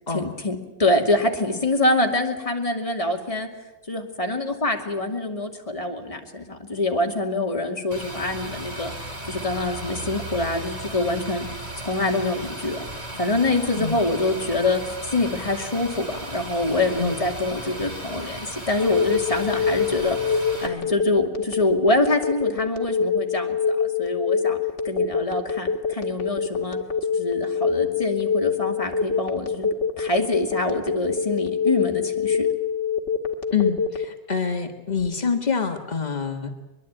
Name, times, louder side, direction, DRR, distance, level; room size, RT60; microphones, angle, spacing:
voice 1, 0.1-3.5 3.9-8.9 9.3-11.5 11.8-12.8 13.2-24.6 24.8-26.8 27.1-29.7 30.0-32.5, left 2 dB, 10° left, 2 dB, 2.1 m, -25 dB
sound 1, 7.9-20.7, right 1 dB, 10° right, 3.5 m, -36 dB
Telephone, 18.8-34.0, left 6 dB, 30° left, 1.5 m, -24 dB
voice 2, 33.5-36.5, left 6 dB, 50° left, 4 dB, 0.5 m, -26 dB
23.0 x 22.5 x 9.0 m, 1.0 s
omnidirectional pair, 3.5 m